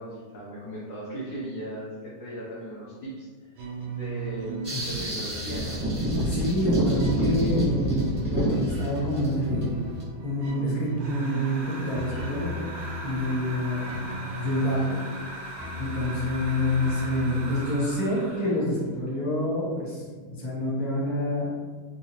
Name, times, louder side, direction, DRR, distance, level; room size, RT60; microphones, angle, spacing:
voice 1, 0.0-3.5 3.9-5.8, right 1 dB, 65° left, -7 dB, 0.8 m, -37 dB
sound 1, 3.5-19.0, right 2 dB, 90° right, 1.5 m, -37 dB
sound 2, 4.6-10.0, equal, 20° right, 0.6 m, -27 dB
voice 2, 6.3-9.8 10.2-12.5 13.0-14.1 14.4-14.8 15.3-20.0 20.4-21.5, left 1 dB, 15° left, -8 dB, 0.7 m, -28 dB
Breathing Out, 11.0-18.6, right 1 dB, 65° right, 1.1 m, -40 dB
4.0 x 2.5 x 2.8 m, 1.5 s
omnidirectional pair, 2.2 m